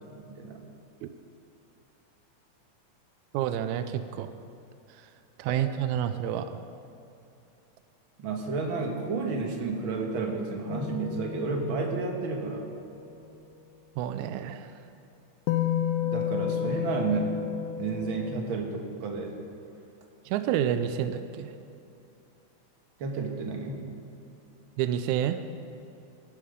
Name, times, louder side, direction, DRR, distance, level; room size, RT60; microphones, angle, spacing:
voice 1, 0.1-0.6 8.2-12.7 16.0-17.3 17.8-19.3 23.0-23.8, right 4 dB, 50° right, 2 dB, 1.8 m, -31 dB
voice 2, 3.3-4.3 5.4-6.5 14.0-14.7 20.3-21.5 24.8-25.4, right 10 dB, 80° right, 10 dB, 1.9 m, -29 dB
sound 1, 10.7-13.0 15.5-18.4, left 9 dB, 80° left, 2.0 m, -31 dB
18.0 x 8.6 x 5.2 m, 2.7 s
omnidirectional pair, 3.5 m